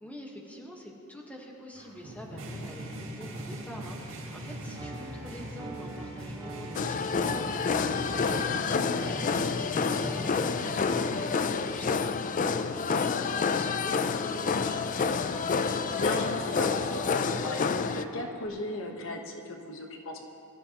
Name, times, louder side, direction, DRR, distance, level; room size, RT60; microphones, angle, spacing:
voice 1, 0.0-15.0, equal, 5° left, -1 dB, 1.3 m, -45 dB
sound 1, 1.7-11.8, right 1 dB, 60° right, 1.9 m, -41 dB
Piano, 4.7-18.5, right 1 dB, 20° right, 1.7 m, -46 dB
sound 2, 6.7-18.0, left 5 dB, 35° left, 0.4 m, -28 dB
voice 2, 10.8-11.2 15.4-20.2, left 1 dB, 60° left, 2 dB, 1.2 m, -36 dB
22.5 x 12.5 x 3.0 m, 2.7 s
head